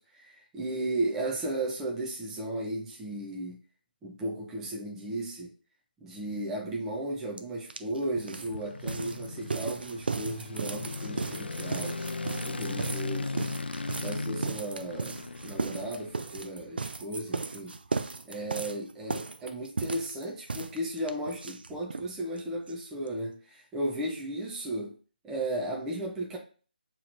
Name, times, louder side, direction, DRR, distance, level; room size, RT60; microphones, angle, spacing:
voice 1, 0.0-3.6 4.0-5.5 6.0-12.0 12.4-13.5 13.9-15.2 15.4-17.8 18.2-24.9 25.2-26.4, right 1 dB, 5° right, -2 dB, 0.4 m, -35 dB
sound 1, 7.4-7.5 7.7-22.1 22.4-22.5 22.7-22.8 23.1-23.2, right 4 dB, 70° right, 0.5 m, -36 dB
sound 2, 8.1-16.5, left 3 dB, 85° left, 0.4 m, -38 dB
5.5 x 3.0 x 2.5 m, 0.37 s
figure-of-eight pair, 160°, 5 cm